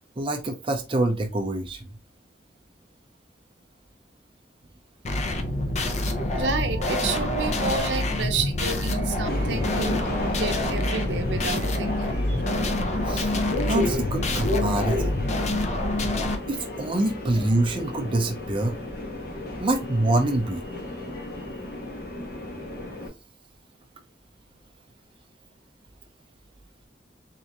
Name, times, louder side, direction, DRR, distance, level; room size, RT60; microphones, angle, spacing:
voice 1, 0.2-1.9 5.9-6.3 13.1-13.3 13.7-15.2 16.5-18.8 19.6-20.6, right 2 dB, 30° right, 0.5 m, -26 dB
sound 1, 5.0-16.4, left 1 dB, 40° left, 0.6 m, -26 dB
voice 2, 6.3-12.4, right 4 dB, 75° right, 0.7 m, -31 dB
Subway metro underground, 9.3-23.1, left 1 dB, 60° left, 1.1 m, -33 dB
3.7 x 3.3 x 2.9 m
head